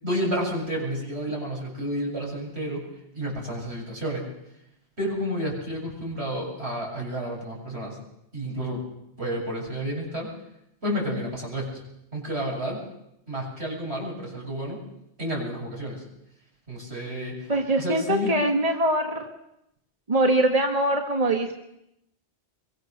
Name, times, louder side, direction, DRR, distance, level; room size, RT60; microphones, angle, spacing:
voice 1, 0.0-2.9 3.1-4.3 5.0-8.0 8.3-8.8 9.2-10.3 10.8-11.8 12.1-12.8 13.3-14.8 15.2-16.0 16.7-17.5 17.8-18.3, equal, 75° right, -2 dB, 7.8 m, -30 dB
voice 2, 17.5-19.3 20.1-21.5, right 1 dB, 35° right, 2 dB, 1.9 m, -23 dB
24.5 x 23.0 x 6.7 m, 0.80 s
omnidirectional pair, 1.1 m